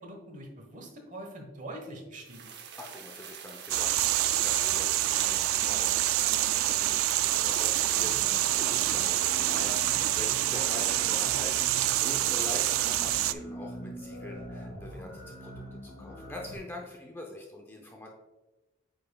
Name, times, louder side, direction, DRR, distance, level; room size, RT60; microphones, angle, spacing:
voice 1, 0.0-2.5, right 1 dB, 35° right, 2 dB, 1.1 m, -43 dB
sound 1, 2.2-11.2, right 7 dB, 50° right, 0.7 m, -45 dB
voice 2, 2.8-18.1, left 2 dB, 10° left, 0 dB, 0.6 m, -44 dB
sound 2, 3.7-13.3, right 14 dB, 80° right, 0.3 m, -27 dB
sound 3, 8.0-16.6, right 1 dB, 70° left, 1.7 m, -44 dB
8.6 x 5.4 x 2.3 m, 1.1 s
head